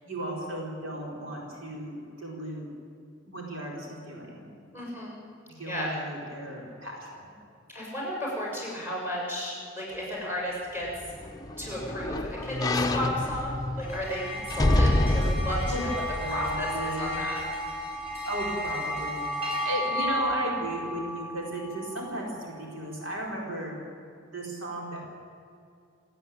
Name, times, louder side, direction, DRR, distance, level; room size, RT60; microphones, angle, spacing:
voice 1, 0.0-2.7 3.3-4.5 5.6-7.2 11.9-12.0 15.6-15.8 16.2-17.1 18.3-23.8 24.3-25.1, right 1 dB, 80° right, -2 dB, 4.7 m, -35 dB
voice 2, 4.7-5.1 5.7-5.9 7.7-10.9 11.6-16.0 16.3-17.4, equal, 10° right, -3 dB, 7.3 m, -34 dB
sound 1, 10.9-17.2 17.7-17.8, left 1 dB, 20° left, 0.8 m, -28 dB
sound 2, 13.8-22.5, equal, 30° right, 6.0 m, -33 dB
28.5 x 9.9 x 9.3 m, 2.4 s
head